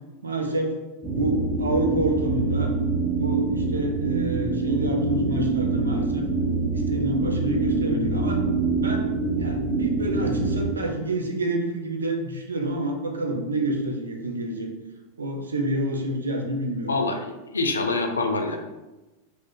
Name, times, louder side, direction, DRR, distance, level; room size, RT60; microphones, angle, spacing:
voice 1, 0.2-0.8 1.1-2.7 3.2-6.3 6.7-8.4 8.8-14.7 15.2-16.9, right 1 dB, 85° right, 3 dB, 0.5 m, -28 dB
sound 1, 1.0-10.7, right 3 dB, 10° right, 0.8 m, -25 dB
voice 2, 16.9-18.6, left 3 dB, 85° left, 5 dB, 0.4 m, -25 dB
2.5 x 2.4 x 3.6 m, 1.1 s
hypercardioid pair, 95°, 0 cm